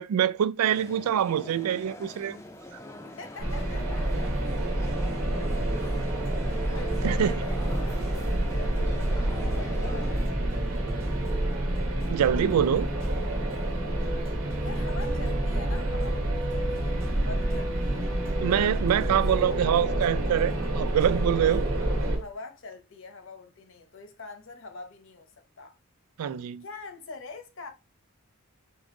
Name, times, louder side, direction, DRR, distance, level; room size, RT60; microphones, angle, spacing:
voice 1, 0.0-2.4 7.0-7.3 12.1-12.9 18.4-21.6 26.2-26.6, right 9 dB, 85° right, 0.3 m, -25 dB
sound 1, 0.6-10.3, left 1 dB, 10° left, 0.5 m, -44 dB
voice 2, 3.0-4.2 4.6-4.7 5.8-8.0 8.5-10.4 14.6-18.1 19.1-19.8 21.8-25.8 26.6-27.7, left 3 dB, 60° left, 0.9 m, -44 dB
sound 2, 3.4-22.2, right 1 dB, 70° right, 1.0 m, -29 dB
sound 3, 5.2-22.2, right 1 dB, 10° right, 0.8 m, -35 dB
4.8 x 2.5 x 3.8 m
head